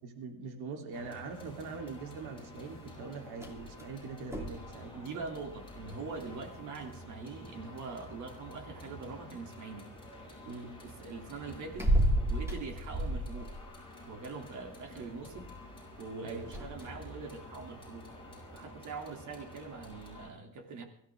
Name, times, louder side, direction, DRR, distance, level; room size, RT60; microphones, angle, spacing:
voice 1, 0.0-5.0 10.4-10.8 16.2-16.5, right 4 dB, 80° right, 3 dB, 3.6 m, -42 dB
sound 1, 0.9-20.3, left 1 dB, 15° left, 7.3 m, -50 dB
sound 2, 1.9-18.6, right 1 dB, 5° right, 2.8 m, -38 dB
voice 2, 4.9-9.9 10.8-11.9 12.3-13.5 14.0-15.5 16.0-18.1 18.5-20.8, right 4 dB, 50° right, 4 dB, 3.1 m, -43 dB
24.0 x 14.5 x 3.8 m, 0.65 s
cardioid pair, 150°, 38 cm